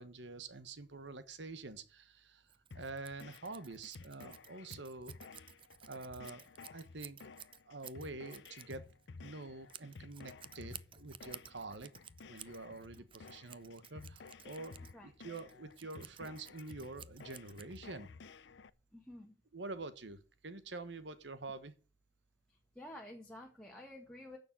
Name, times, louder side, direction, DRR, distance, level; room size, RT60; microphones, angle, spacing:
voice 1, 0.0-5.4 5.9-6.4 6.7-7.2 7.7-8.9 9.2-11.9 12.3-18.1 19.5-21.7, right 3 dB, 75° right, 11 dB, 1.3 m, -47 dB
Scissors, 2.5-18.1, right 9 dB, 30° right, 0.5 m, -55 dB
sound 1, 2.7-18.7, left 4 dB, 75° left, 0.6 m, -54 dB
voice 2, 18.9-19.4 22.5-24.4, left 1 dB, 5° left, 0 dB, 1.6 m, -51 dB
10.0 x 6.9 x 8.0 m, 0.35 s
head